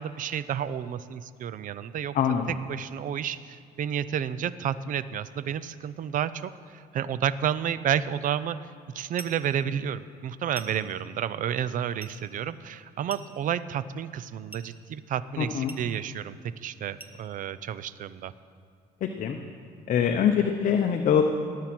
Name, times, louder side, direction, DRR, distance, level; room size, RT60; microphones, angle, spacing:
voice 1, 0.0-2.1 2.7-8.6 8.9-18.3, right 9 dB, 50° right, 16 dB, 0.5 m, -31 dB
sound 1, 9.2-9.5 10.5-10.9 12.0-12.2 13.1-13.5 14.5-14.8 15.7-15.9 17.0-17.2, right 2 dB, 10° right, 1.0 m, -44 dB
voice 2, 15.4-15.8 19.0-19.4 19.9-21.2, left 8 dB, 50° left, 4 dB, 0.8 m, -24 dB
18.5 x 7.5 x 6.0 m, 2.2 s
cardioid pair, 110°, 17 cm